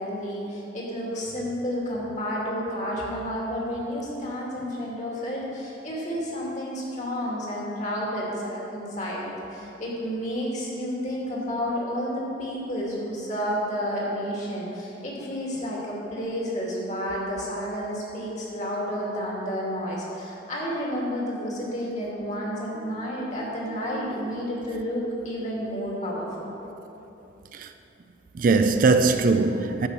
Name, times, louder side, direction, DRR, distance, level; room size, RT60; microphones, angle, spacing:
voice 1, 0.0-26.5, equal, 40° left, 2.3 m, -31 dB
voice 2, 22.8-24.6 27.5-27.7 28.3-29.9, right 3 dB, 45° right, 0.4 m, -24 dB
10.5 x 5.4 x 7.2 m
head